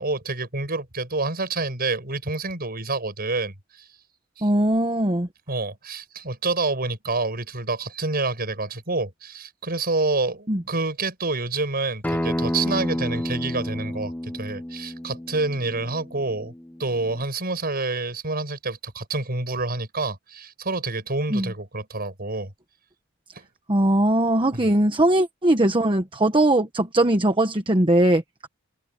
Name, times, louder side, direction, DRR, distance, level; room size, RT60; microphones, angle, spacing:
voice 1, 0.0-3.9 4.4-4.5 5.5-16.5 16.8-22.5 24.5-24.6, right 3 dB, 45° right, 6.7 m, -28 dB
voice 2, 4.4-5.3 10.5-10.6 21.3-21.5 23.7-28.5, right 1 dB, 25° right, 1.2 m, -20 dB
Acoustic guitar, 12.0-17.2, equal, 10° left, 1.0 m, -30 dB
open air
head